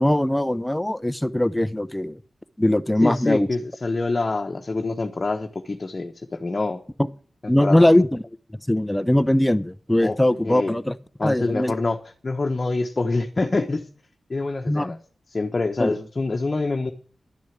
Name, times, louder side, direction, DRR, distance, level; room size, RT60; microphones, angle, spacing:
voice 1, 0.0-2.2 2.6-3.5 7.0-7.1 7.5-8.2 8.7-11.0 11.2-11.7 14.7-14.9 15.8-16.0, left 1 dB, 10° left, 0.5 m, -20 dB
voice 2, 3.0-6.8 7.6-7.9 10.0-10.2 10.4-10.7 11.2-13.9 14.3-15.0 15.3-16.9, left 3 dB, 40° left, 1.0 m, -26 dB
11.5 x 6.4 x 8.4 m
wide cardioid pair, 95°, 0 cm